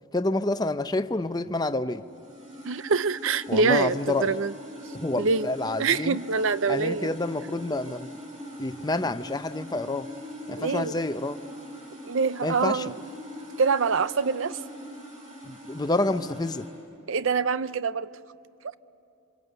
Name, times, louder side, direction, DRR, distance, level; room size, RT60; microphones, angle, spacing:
voice 1, 0.1-2.1 3.5-4.3 4.9-6.2 6.7-8.2 8.6-10.1 10.5-11.4 12.4-12.9 15.4-16.7, left 2 dB, 20° left, 0.6 m, -28 dB
sound 1, 2.0-16.7, equal, 20° right, 6.6 m, -42 dB
voice 2, 2.6-4.5 5.2-5.5 5.8-7.1 10.6-10.9 12.0-13.0 13.6-14.6 17.1-18.1 18.6-18.7, right 5 dB, 65° right, 0.5 m, -25 dB
27.0 x 26.0 x 8.1 m
head